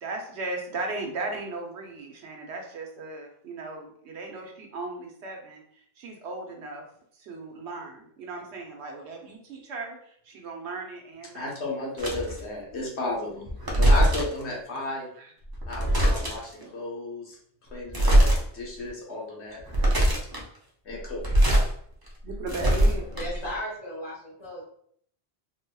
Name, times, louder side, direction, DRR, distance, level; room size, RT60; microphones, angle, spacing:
voice 1, 0.0-5.6 6.0-6.8 7.2-11.5 13.7-13.8 15.2-15.3 16.6-16.7 22.2-23.1, right 3 dB, 80° right, 2 dB, 1.0 m, -37 dB
voice 2, 11.3-15.1 15.7-17.4 17.7-18.3 18.5-19.6 20.8-21.4, left 2 dB, 80° left, -3 dB, 1.4 m, -33 dB
sound 1, 12.0-12.4 13.5-14.4 15.5-16.5 17.9-18.4 18.9-19.0 19.6-20.4 21.1-21.7 22.1-23.5, right 1 dB, 25° right, 0.5 m, -21 dB
voice 3, 23.1-24.6, equal, 40° left, -11 dB, 1.6 m, -35 dB
3.9 x 2.9 x 2.2 m, 0.63 s
omnidirectional pair, 1.1 m